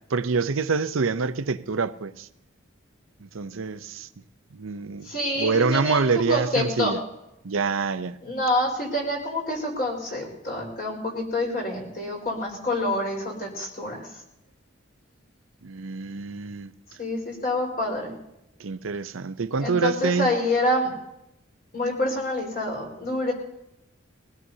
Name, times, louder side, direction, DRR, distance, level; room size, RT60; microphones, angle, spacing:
voice 1, 0.1-2.3 3.2-4.1 4.5-5.1 5.4-7.0 7.4-8.2 15.6-16.7 18.6-20.3, right 4 dB, 80° right, 0.7 m, -26 dB
voice 2, 5.0-6.0 6.3-6.9 8.2-14.1 17.0-18.1 19.6-20.9 21.7-23.3, left 1 dB, 45° left, 4.5 m, -27 dB
21.5 x 16.5 x 2.8 m
head